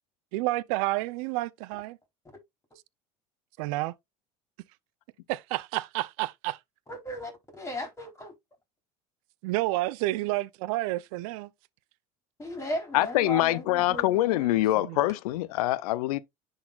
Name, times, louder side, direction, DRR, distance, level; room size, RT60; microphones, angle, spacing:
voice 1, 0.3-2.0 3.6-3.9 5.3-6.6 9.4-11.5 14.8-15.0, right 18 dB, 75° right, 0.5 m, -30 dB
voice 2, 6.9-8.3 12.4-14.5, equal, 15° left, 3.5 m, -36 dB
voice 3, 12.9-16.2, left 16 dB, 85° left, 0.5 m, -25 dB
10.5 x 4.0 x 2.4 m
supercardioid pair, 100°, 19 cm